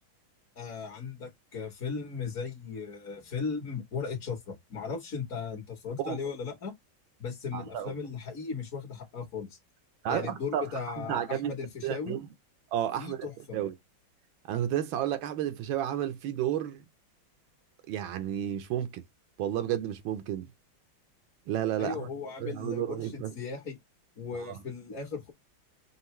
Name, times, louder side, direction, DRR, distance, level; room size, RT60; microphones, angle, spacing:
voice 1, 0.5-6.7 7.2-9.6 10.1-12.2 13.0-13.6 21.8-23.8 24.2-25.3, left 5 dB, 45° left, 1.4 m, -37 dB
voice 2, 7.5-7.9 10.0-10.7 11.0-11.5 11.8-12.2 12.7-13.3 13.5-13.7 14.5-16.8 17.9-19.0 19.4-20.5 21.5-22.1 22.4-23.3 24.4-24.6, right 11 dB, 80° right, 1.4 m, -31 dB
5.6 x 2.5 x 3.0 m
omnidirectional pair, 2.2 m